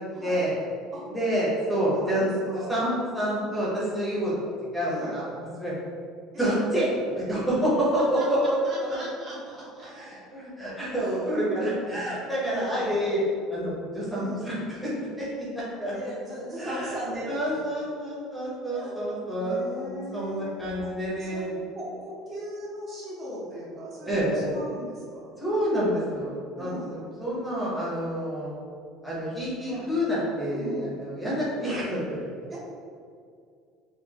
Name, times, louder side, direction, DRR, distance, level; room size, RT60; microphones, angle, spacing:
voice 1, 0.2-0.6 1.1-2.3 2.5-5.3 5.6-5.8 6.4-6.9 7.1-9.0 9.8-13.2 13.5-14.6 14.8-14.9 15.2-16.0 16.6-17.0 17.3-21.5 24.0-24.5 25.4-28.5 29.0-32.0, equal, ahead, -8 dB, 0.8 m, -28 dB
voice 2, 1.9-2.8 3.3-3.7 4.9-5.2 6.3-6.6 7.9-9.9 11.0-11.4 12.4-12.9 14.1-14.5 15.8-17.6 18.7-18.9 19.4-20.5 20.8-20.9 21.1-25.3 26.6-27.0 29.6-29.9 30.5-30.9 32.5-32.6, right 1 dB, 30° right, -7 dB, 0.8 m, -38 dB
4.3 x 2.5 x 2.8 m, 2.3 s
cardioid pair, 175°, 0 cm